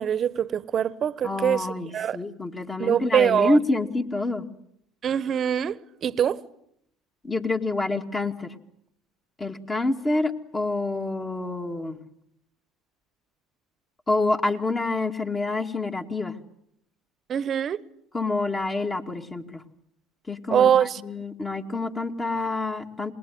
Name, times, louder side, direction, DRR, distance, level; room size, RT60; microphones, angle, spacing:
voice 1, 0.0-1.7 1.9-2.2 2.8-3.6 5.0-6.4 17.3-17.8 20.5-21.0, right 9 dB, 45° right, 1.1 m, -23 dB
voice 2, 1.2-4.5 7.2-8.5 9.4-12.0 14.1-16.3 18.1-19.6 20.3-23.1, left 2 dB, 20° left, 2.2 m, -27 dB
28.0 x 20.5 x 9.4 m
supercardioid pair, 85°, 0 cm